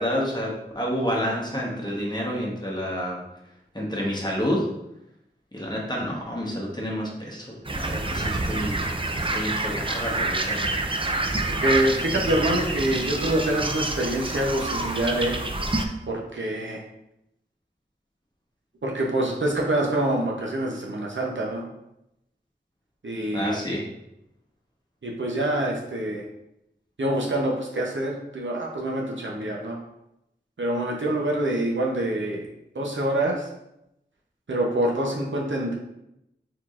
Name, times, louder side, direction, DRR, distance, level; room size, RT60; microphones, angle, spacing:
voice 1, 0.0-3.2 3.7-4.7 5.5-8.8 9.3-10.6 23.3-23.8, equal, 20° left, -3 dB, 1.0 m, -29 dB
sound 1, 7.7-15.9, right 2 dB, 30° right, 0.4 m, -27 dB
voice 2, 11.5-15.4 16.1-16.8 18.8-21.7 23.0-23.6 25.0-26.2 27.0-29.8 30.6-32.5 32.7-33.5 34.5-35.7, right 1 dB, 80° right, -2 dB, 0.7 m, -26 dB
4.6 x 3.8 x 2.4 m, 0.85 s
wide cardioid pair, 45°, 19 cm